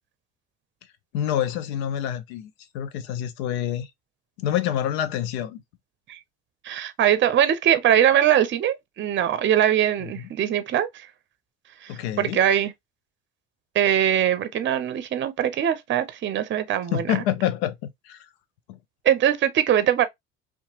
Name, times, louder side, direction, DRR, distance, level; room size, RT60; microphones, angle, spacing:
voice 1, 1.1-3.9 4.4-5.6 10.0-10.3 11.9-12.4 16.9-18.3 18.7-18.8, left 10 dB, 90° left, 0.6 m, -27 dB
voice 2, 6.6-11.1 11.8-12.7 13.7-17.1 19.0-20.0, right 10 dB, 40° right, 0.6 m, -22 dB
2.8 x 2.3 x 2.7 m
supercardioid pair, 80°, 31 cm